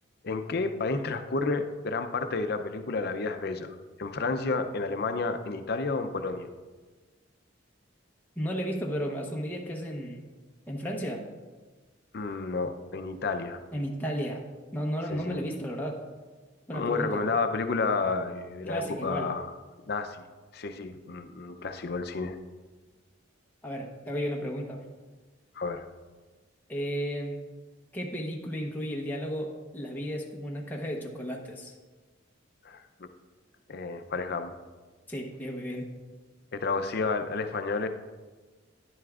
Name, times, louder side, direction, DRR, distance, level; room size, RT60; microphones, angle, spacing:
voice 1, 0.2-6.5 12.1-13.6 15.1-15.4 16.7-19.5 19.9-20.2 20.5-22.4 25.5-25.8 32.6-32.8 33.7-34.5 36.5-37.9, left 3 dB, 55° left, 8 dB, 0.5 m, -31 dB
voice 2, 8.4-10.2 10.7-11.2 13.7-14.4 14.7-16.0 16.7-17.2 18.7-19.3 23.6-24.8 26.7-27.4 27.9-31.7 35.1-35.9, equal, 10° left, -1 dB, 0.9 m, -33 dB
11.0 x 10.0 x 2.4 m, 1.3 s
head